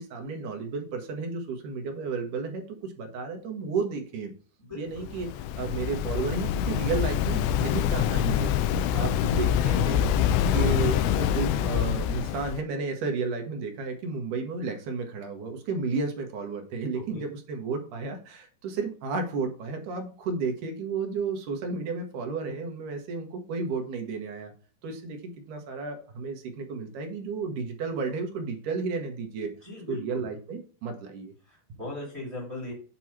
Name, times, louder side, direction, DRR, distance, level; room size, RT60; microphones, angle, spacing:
voice 1, 0.0-4.3 4.8-5.3 5.6-8.7 8.9-10.1 10.5-24.5 24.8-29.5 29.9-31.3, right 4 dB, 70° right, 3 dB, 2.1 m, -32 dB
voice 2, 4.6-5.1 16.9-17.3 29.6-30.3 31.5-32.7, left 2 dB, 20° right, -2 dB, 1.8 m, -39 dB
Waves surf, 4.9-12.6, left 9 dB, 85° left, 2.7 m, -25 dB
8.4 x 3.0 x 5.8 m, 0.40 s
omnidirectional pair, 4.8 m